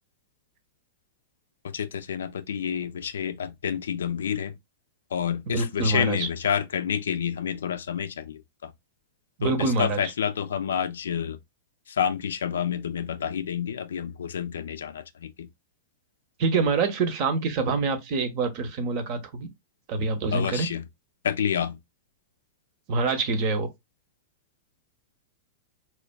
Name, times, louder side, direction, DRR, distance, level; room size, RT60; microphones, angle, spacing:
voice 1, 1.6-4.6 5.1-8.7 9.4-11.4 11.9-15.5 20.3-20.9 21.2-21.8, left 8 dB, 70° left, 0.4 m, -29 dB
voice 2, 5.5-6.3 9.4-10.0 16.4-19.5 19.9-20.7 22.9-23.7, right 3 dB, 45° right, 0.8 m, -25 dB
4.4 x 2.3 x 2.2 m
figure-of-eight pair, 100°, 0 cm